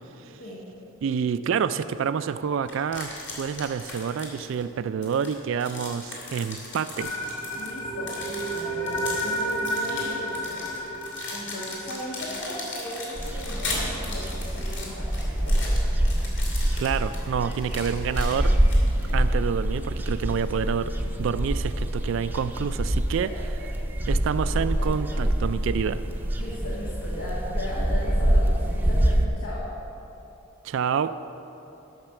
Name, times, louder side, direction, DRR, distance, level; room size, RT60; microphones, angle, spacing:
voice 1, 1.0-7.1 16.8-18.6 19.1-20.9 21.2-23.3 24.1-26.0 30.6-31.1, right 7 dB, 60° right, 12 dB, 0.3 m, -28 dB
sound 1, 2.7-4.6 5.0-19.2, left 2 dB, 55° left, 2.5 m, -38 dB
sound 2, 7.0-13.1, equal, 35° left, 1.8 m, -32 dB
voice 2, 7.5-10.6 11.3-15.7 24.5-24.9 26.4-29.7, left 1 dB, 80° left, -7 dB, 1.7 m, -37 dB
sound 3, 13.2-29.3, right 1 dB, 10° right, 0.6 m, -25 dB
12.0 x 6.0 x 6.9 m, 3.0 s
head